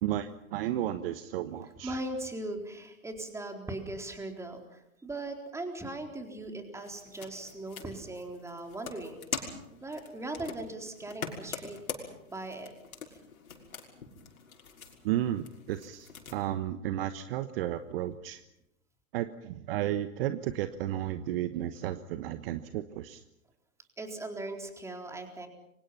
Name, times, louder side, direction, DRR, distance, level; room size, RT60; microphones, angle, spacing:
voice 1, 0.0-2.0 15.0-18.4 19.1-23.2, right 12 dB, 40° right, 11 dB, 1.3 m, -33 dB
voice 2, 1.8-12.7 13.1-13.2 24.0-25.5, right 2 dB, 5° right, 4 dB, 4.0 m, -39 dB
sound 1, 6.8-16.4, left 6 dB, 75° left, 6.1 m, -44 dB
29.5 x 24.5 x 5.8 m, 0.82 s
hypercardioid pair, 125°, 43 cm